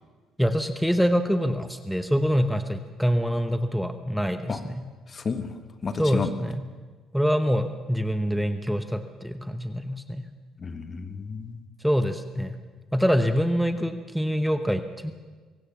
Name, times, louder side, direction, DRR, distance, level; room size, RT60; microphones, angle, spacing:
voice 1, 0.4-4.7 6.0-6.5 7.1-10.2 11.8-12.6 12.9-15.1, equal, ahead, 8 dB, 1.0 m, -25 dB
voice 2, 5.1-5.5 5.8-6.3 10.6-11.6, left 5 dB, 35° left, 9 dB, 1.4 m, -31 dB
23.5 x 16.5 x 7.2 m, 1.4 s
cardioid pair, 110°, 0 cm